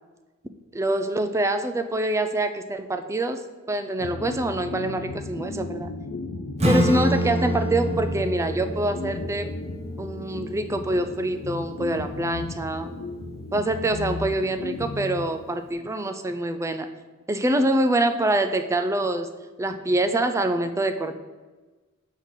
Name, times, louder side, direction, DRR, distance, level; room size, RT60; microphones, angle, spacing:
voice 1, 0.7-3.4 3.7-5.9 6.7-9.5 10.0-12.9 13.5-16.9 17.3-19.3 19.6-21.2, right 1 dB, 15° right, 8 dB, 0.4 m, -25 dB
sound 1, 4.0-15.9, left 3 dB, 55° left, 0.5 m, -35 dB
Acoustic guitar / Strum, 6.6-11.8, equal, 30° right, 0.8 m, -28 dB
6.3 x 3.7 x 5.6 m, 1.2 s
head